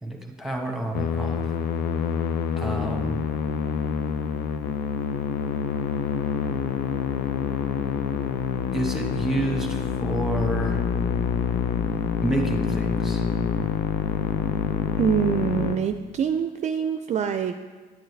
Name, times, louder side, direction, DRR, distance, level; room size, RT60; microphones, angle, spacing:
voice 1, 0.0-1.5 2.6-3.3 8.7-10.8 12.2-13.2, right 1 dB, ahead, 2 dB, 1.3 m, -29 dB
Musical instrument, 0.9-15.8, left 7 dB, 80° left, 0.6 m, -26 dB
voice 2, 15.0-17.6, right 7 dB, 45° right, 8 dB, 0.4 m, -25 dB
9.2 x 8.8 x 3.3 m, 1.4 s
cardioid pair, 110°, 17 cm